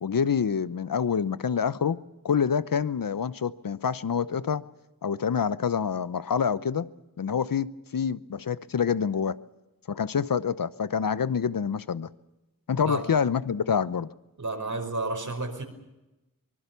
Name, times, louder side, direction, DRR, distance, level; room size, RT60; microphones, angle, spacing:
voice 1, 0.0-2.0 2.2-4.6 5.0-6.9 7.2-9.4 9.9-12.1 12.7-14.1, left 7 dB, 75° left, 0.9 m, -27 dB
voice 2, 14.4-15.6, right 2 dB, 55° right, 5.4 m, -31 dB
25.0 x 20.5 x 7.0 m
cardioid pair, 45°, 34 cm